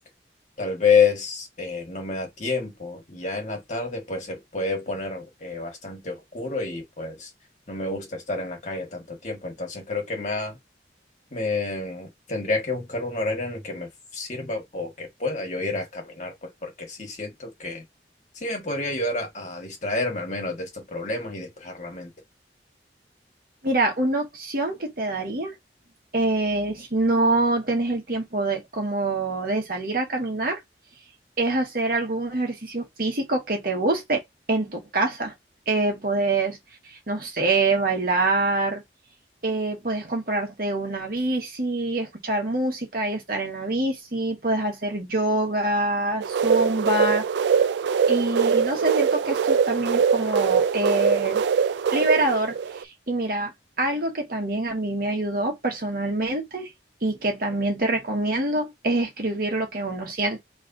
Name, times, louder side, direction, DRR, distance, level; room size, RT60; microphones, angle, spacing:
voice 1, 0.6-7.3 7.7-10.6 11.3-17.8 18.3-22.1, left 4 dB, 40° left, 1.6 m, -29 dB
voice 2, 23.6-25.5 26.1-30.6 31.4-34.2 34.5-35.3 35.7-36.6 37.1-38.8 39.4-47.2 48.1-51.4 51.9-52.6 53.1-53.5 53.8-56.7 57.0-60.4, right 2 dB, 55° right, 1.4 m, -25 dB
sound 1, 46.2-52.8, right 6 dB, 80° right, 0.3 m, -22 dB
3.2 x 3.2 x 3.9 m
head